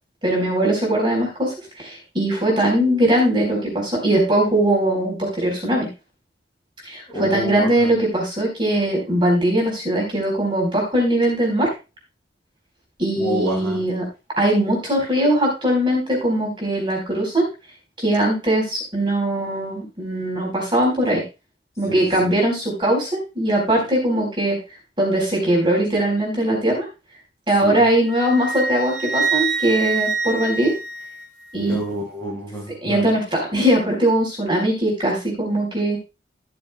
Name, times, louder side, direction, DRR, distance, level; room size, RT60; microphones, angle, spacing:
voice 1, 0.2-5.9 6.8-11.7 13.0-14.1 14.4-17.5 18.0-21.2 21.8-23.1 23.3-24.6 25.0-26.9 27.5-30.7 31.5-31.8 32.8-36.0, right 1 dB, 25° right, -1 dB, 4.5 m, -20 dB
voice 2, 7.1-7.9 13.2-13.8 21.9-22.3 27.6-27.8 31.6-33.0, right 1 dB, 15° left, -4 dB, 6.9 m, -28 dB
Wind instrument woodwind instrument, 28.1-31.6, right 4 dB, 75° right, 2.0 m, -25 dB
16.5 x 7.1 x 2.3 m, 0.27 s
head